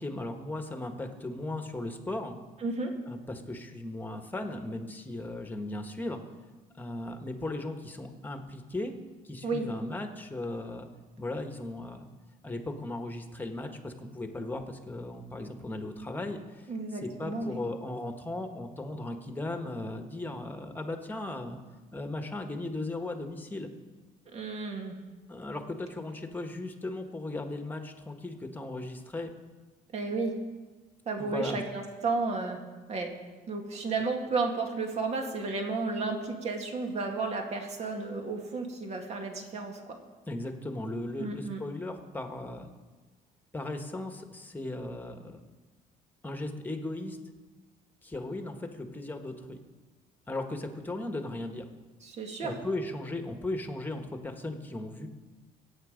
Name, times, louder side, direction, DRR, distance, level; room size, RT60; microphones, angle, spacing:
voice 1, 0.0-2.4 3.1-6.2 6.8-8.9 9.2-10.9 11.2-12.1 12.4-16.7 17.0-21.6 21.9-23.7 25.3-29.3 31.2-31.6 40.3-42.7 43.5-45.4 46.2-47.2 48.0-49.6 50.3-51.7 52.4-55.1, left 2 dB, 10° left, 5 dB, 1.5 m, -37 dB
voice 2, 2.6-2.9 9.4-9.7 16.7-17.5 24.3-25.0 29.9-30.4 31.1-32.6 32.9-33.1 33.5-40.0 41.2-41.6 52.0-52.5, right 3 dB, 45° right, 3 dB, 2.2 m, -32 dB
23.0 x 9.0 x 5.2 m, 1.3 s
cardioid pair, 125°, 15 cm